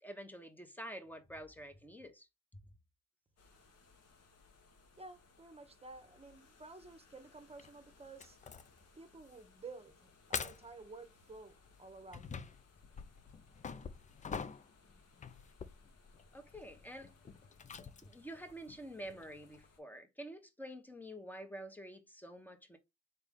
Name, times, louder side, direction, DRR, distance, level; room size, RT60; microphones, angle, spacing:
voice 1, 0.0-2.6 16.3-17.1 18.0-22.8, equal, 5° left, 0.9 m, -48 dB
sound 1, 3.4-19.8, left 4 dB, 55° left, 1.1 m, -66 dB
voice 2, 5.0-8.4 9.0-12.6, right 3 dB, 20° right, 0.9 m, -53 dB
sound 2, 7.6-7.7 8.2-8.8 9.2-9.4 9.8-9.9 10.3-10.8 11.6-19.7, left 6 dB, 25° left, 0.4 m, -46 dB
4.1 x 3.4 x 3.5 m
cardioid pair, 90°, 30 cm